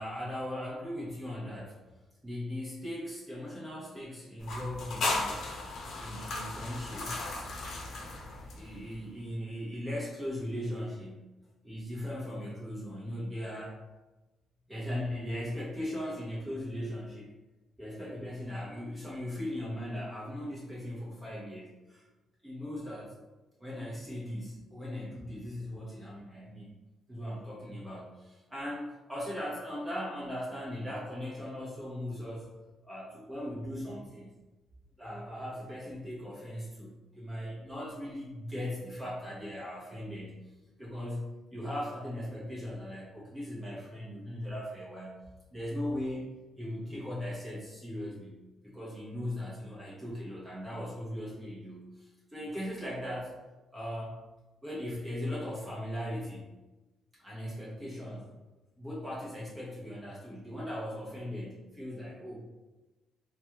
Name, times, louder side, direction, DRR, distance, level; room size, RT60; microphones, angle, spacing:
voice 1, 0.0-1.8 2.2-5.4 6.0-7.1 8.5-11.2 11.6-13.8 14.7-17.3 17.8-22.0 22.4-23.2 23.6-26.7 27.1-32.5 32.8-34.3 35.0-40.4 40.8-41.2 41.5-45.2 45.5-46.3 46.6-48.4 48.6-53.4 53.7-54.3 54.6-56.5 57.2-58.3 58.8-62.4, left 1 dB, 15° right, -6 dB, 0.8 m, -38 dB
sound 1, 4.4-9.0, left 2 dB, 65° left, 0.6 m, -36 dB
3.3 x 2.2 x 2.8 m, 1.1 s
cardioid pair, 90°, 0 cm